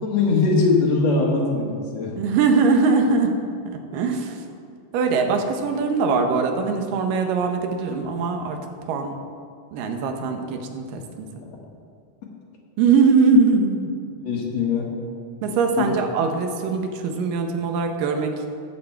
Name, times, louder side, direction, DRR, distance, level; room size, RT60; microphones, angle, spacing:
voice 1, 0.0-2.1 14.2-15.0 15.7-15.9, left 4 dB, 60° left, -1 dB, 2.4 m, -21 dB
voice 2, 2.2-3.3 3.9-4.4 4.9-8.6 8.9-9.2 9.7-11.3 12.8-13.8 15.4-18.3, right 4 dB, 90° right, 5 dB, 2.6 m, -21 dB
13.0 x 7.7 x 4.5 m, 2.4 s
omnidirectional pair, 3.8 m